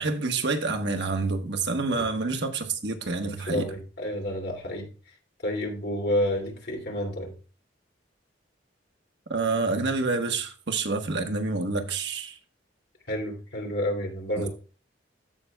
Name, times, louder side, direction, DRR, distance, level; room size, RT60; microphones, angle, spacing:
voice 1, 0.0-3.7 9.3-12.4 14.4-14.5, right 3 dB, 70° right, 1.2 m, -28 dB
voice 2, 3.2-4.9 5.4-7.3 13.1-14.5, left 1 dB, 60° left, 2.6 m, -30 dB
14.5 x 5.6 x 2.3 m
head